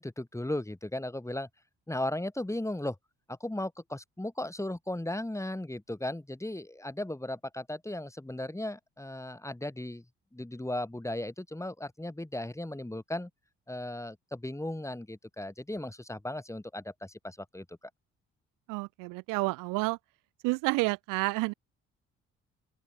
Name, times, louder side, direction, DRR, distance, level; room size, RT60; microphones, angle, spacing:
voice 1, 0.0-1.5 1.9-3.0 3.3-10.0 10.3-13.3 13.7-17.8, left 1 dB, 10° left, 6.3 m, -36 dB
voice 2, 18.7-20.0 20.4-21.5, right 25 dB, 60° right, 1.1 m, -29 dB
open air
figure-of-eight pair, 45°, 35 cm